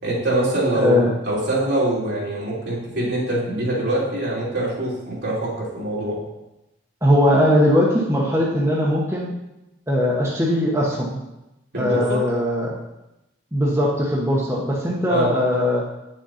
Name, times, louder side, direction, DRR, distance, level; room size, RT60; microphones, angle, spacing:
voice 1, 0.0-6.2 11.7-12.2 15.1-15.3, right 1 dB, 65° right, -6 dB, 3.0 m, -24 dB
voice 2, 0.7-1.1 7.0-9.3 9.9-11.2 11.8-12.7 13.5-15.8, left 1 dB, 15° right, -5 dB, 1.0 m, -20 dB
9.1 x 6.4 x 4.2 m, 0.94 s
head